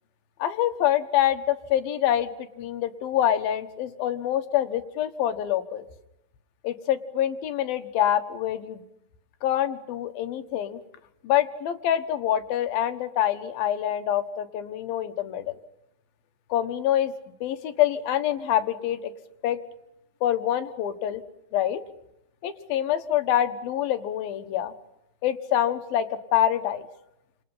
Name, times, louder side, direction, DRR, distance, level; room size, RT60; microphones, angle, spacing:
voice 1, 0.4-5.8 6.6-8.8 9.4-10.8 11.2-15.6 16.5-17.1 17.4-19.0 19.4-19.6 20.2-21.2 21.5-21.8 22.4-24.7 25.2-26.1 26.3-26.8, left 11 dB, 85° left, 9 dB, 3.2 m, -25 dB
29.5 x 28.0 x 5.7 m, 0.85 s
omnidirectional pair, 4.1 m